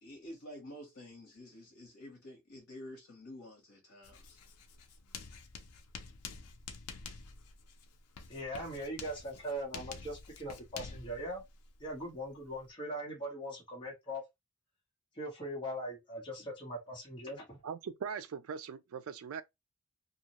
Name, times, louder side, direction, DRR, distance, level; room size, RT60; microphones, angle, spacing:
voice 1, 0.0-4.4, left 1 dB, 65° left, 1.0 m, -49 dB
Writing, 4.0-12.7, left 5 dB, 85° left, 0.5 m, -49 dB
voice 2, 8.3-11.4 11.8-14.2 15.1-17.6, equal, 20° left, 0.9 m, -40 dB
voice 3, 17.6-19.4, right 6 dB, 70° right, 0.3 m, -40 dB
2.6 x 2.1 x 2.9 m
head